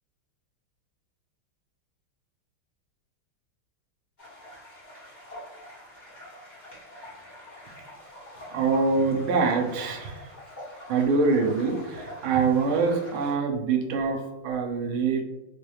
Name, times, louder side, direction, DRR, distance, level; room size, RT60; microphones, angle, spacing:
sound 1, 4.2-13.3, left 1 dB, 25° left, 1.2 m, -45 dB
voice 1, 8.5-10.4 10.9-15.2, right 4 dB, 80° right, 3 dB, 1.4 m, -25 dB
4.4 x 2.3 x 3.2 m, 1.0 s
omnidirectional pair, 2.3 m